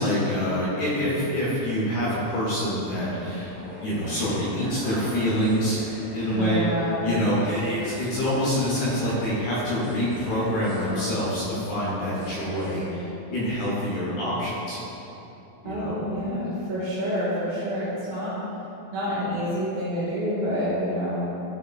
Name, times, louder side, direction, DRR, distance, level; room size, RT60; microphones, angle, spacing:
voice 1, 0.0-5.8 6.1-6.7 7.0-14.8 15.6-15.9, equal, 75° left, -8 dB, 1.8 m, -26 dB
sound 1, 2.8-12.8, right 1 dB, 55° right, 2.0 m, -41 dB
voice 2, 6.3-7.1 15.7-18.3 18.9-21.3, equal, 80° right, -9 dB, 2.4 m, -28 dB
5.7 x 3.1 x 2.2 m, 3.0 s
omnidirectional pair, 4.1 m